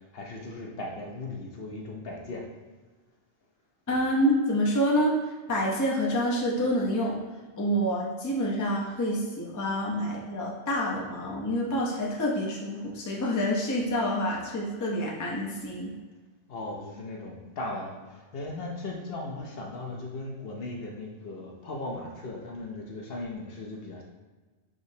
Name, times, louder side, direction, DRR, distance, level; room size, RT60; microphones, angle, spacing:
voice 1, 0.1-2.4 16.5-24.0, left 2 dB, 65° left, 0 dB, 0.9 m, -37 dB
voice 2, 3.9-5.2 5.5-7.2 7.6-15.9, equal, 20° left, -3 dB, 0.5 m, -27 dB
5.0 x 3.0 x 2.7 m, 1.3 s
omnidirectional pair, 1.1 m